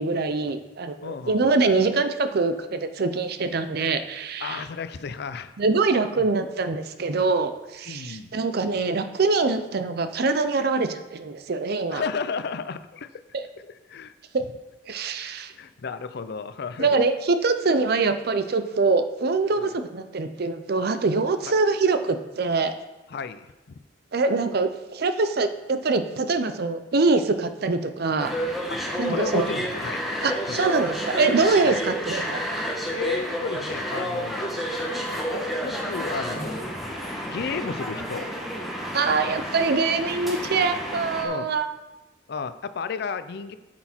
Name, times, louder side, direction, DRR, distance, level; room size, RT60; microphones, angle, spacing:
voice 1, 0.0-4.7 5.6-12.0 13.3-13.5 14.3-14.4 14.9-15.5 16.8-22.7 24.1-28.3 29.0-29.5 30.2-32.7 38.9-41.7, right 3 dB, 55° right, 9 dB, 0.6 m, -24 dB
voice 2, 1.0-1.4 4.4-5.5 6.2-6.3 7.9-8.3 11.9-13.2 13.9-14.1 15.6-17.0 19.6-19.7 23.1-23.8 28.7-30.0 30.5-30.6 31.6-31.8 32.9-34.6 35.3-36.7 37.2-38.3 41.2-41.5 42.3-43.5, left 5 dB, 60° left, 12 dB, 0.5 m, -33 dB
sound 1, 28.2-41.2, equal, ahead, 1.3 m, -30 dB
8.7 x 5.9 x 4.3 m, 1.1 s
head